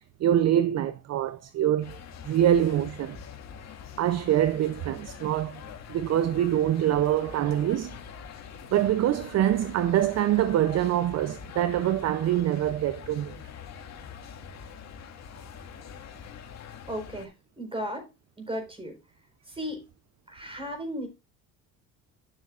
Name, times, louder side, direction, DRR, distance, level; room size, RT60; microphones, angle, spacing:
voice 1, 0.2-2.0 2.2-3.2 4.0-5.6 5.9-8.0 8.7-13.4, right 11 dB, 50° right, 0.7 m, -25 dB
sound 1, 1.8-17.3, left 7 dB, 50° left, 2.1 m, -44 dB
voice 2, 16.9-17.3 17.6-18.1 18.4-19.0 19.5-19.8 20.3-21.1, equal, 15° right, 4.4 m, -35 dB
12.0 x 7.6 x 2.5 m
supercardioid pair, 85°, 34 cm